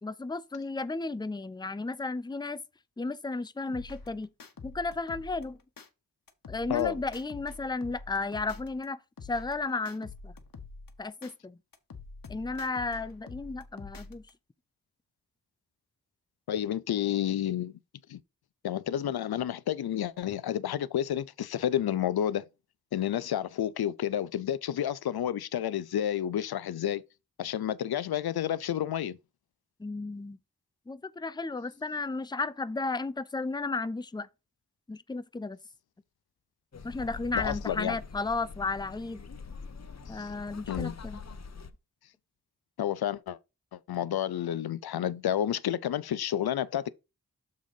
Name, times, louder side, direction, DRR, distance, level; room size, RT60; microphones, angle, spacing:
voice 1, 0.0-2.6 3.0-4.3 4.6-5.6 6.5-10.3 11.0-11.6 12.3-14.2 29.8-30.4 30.9-34.3 34.9-35.6 36.8-39.2 40.1-41.2, left 3 dB, 10° left, 0.5 m, -34 dB
sound 1, 3.7-5.9 6.3-8.8 9.2-11.3 11.7-14.3, left 4 dB, 65° left, 1.2 m, -46 dB
voice 2, 16.5-17.7 18.1-18.2 18.6-22.5 22.9-27.0 27.4-29.2 37.3-38.0 40.2-40.3 40.7-40.9 42.8-43.4 43.9-46.9, left 10 dB, 85° left, 0.5 m, -30 dB
sound 2, 36.7-41.7, left 5 dB, 45° left, 0.9 m, -43 dB
6.7 x 3.7 x 5.2 m
cardioid pair, 45°, 36 cm